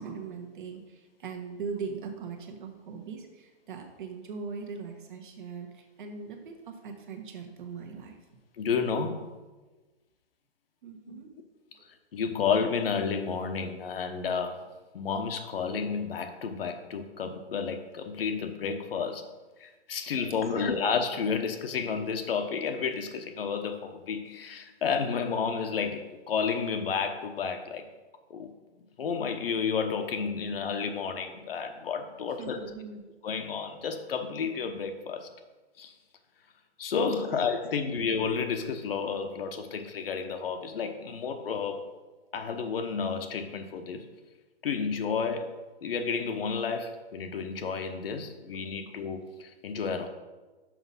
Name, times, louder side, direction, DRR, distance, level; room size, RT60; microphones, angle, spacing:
voice 1, 0.0-8.2 10.8-11.3 20.1-20.2 20.5-20.9 32.4-33.1 37.3-37.4 37.9-38.0, right 5 dB, 50° right, 3 dB, 1.2 m, -40 dB
voice 2, 8.6-9.2 12.1-14.6 14.9-19.3 19.6-27.8 28.3-28.5 29.0-32.6 33.2-35.3 35.8-35.9 36.8-41.9 42.3-44.1 44.6-45.5 45.8-50.1, left 6 dB, 60° left, 6 dB, 0.9 m, -31 dB
5.9 x 5.3 x 5.6 m, 1.2 s
hypercardioid pair, 165°, 33 cm